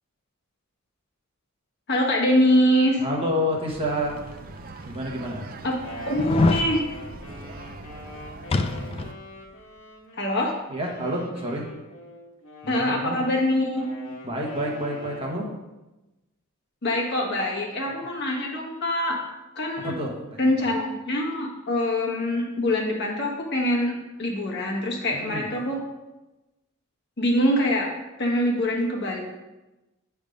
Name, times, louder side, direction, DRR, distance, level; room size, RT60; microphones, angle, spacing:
voice 1, 1.9-3.0 5.6-5.8 6.0-6.9 10.1-10.6 12.7-13.9 16.8-19.2 19.6-20.0 20.4-23.9 24.2-25.8 27.2-27.9 28.2-29.2, left 1 dB, 50° left, -2 dB, 1.3 m, -24 dB
voice 2, 3.0-4.2 4.8-5.5 10.7-11.7 12.6-13.2 14.2-15.5 19.8-20.5 25.1-25.5, equal, 25° right, -2 dB, 1.1 m, -29 dB
sound 1, 3.7-9.1, right 3 dB, 40° right, 0.4 m, -41 dB
sound 2, 4.2-4.3 4.9-5.0 6.1-6.7 8.5-9.2 9.5-9.6, left 2 dB, 25° left, 0.3 m, -23 dB
Wind instrument woodwind instrument, 5.6-10.3 10.8-15.5, left 1 dB, 80° left, 1.4 m, -43 dB
8.1 x 3.5 x 5.1 m, 1.0 s
head